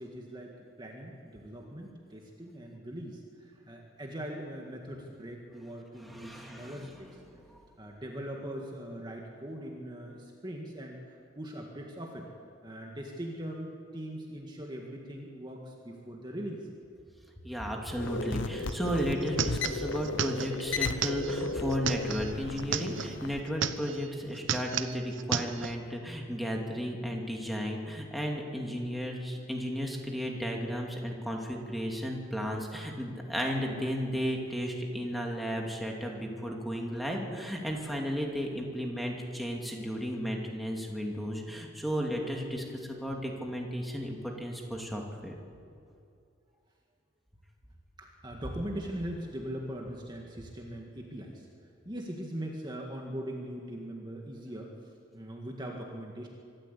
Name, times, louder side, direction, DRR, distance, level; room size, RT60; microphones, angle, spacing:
voice 1, 0.0-7.2 7.8-12.3 12.6-16.7 48.0-51.5 51.9-54.7 55.1-56.3, right 1 dB, 25° right, 0 dB, 1.9 m, -41 dB
voice 2, 6.0-6.9 7.3-7.7 17.4-45.4, equal, ahead, 0 dB, 2.6 m, -34 dB
sound 1, 18.0-23.4, left 3 dB, 85° left, 1.1 m, -35 dB
sound 2, 18.7-18.8 19.0-23.2 23.5-24.1 24.4-25.8, right 7 dB, 85° right, 0.9 m, -34 dB
24.5 x 13.0 x 8.4 m, 2.5 s
head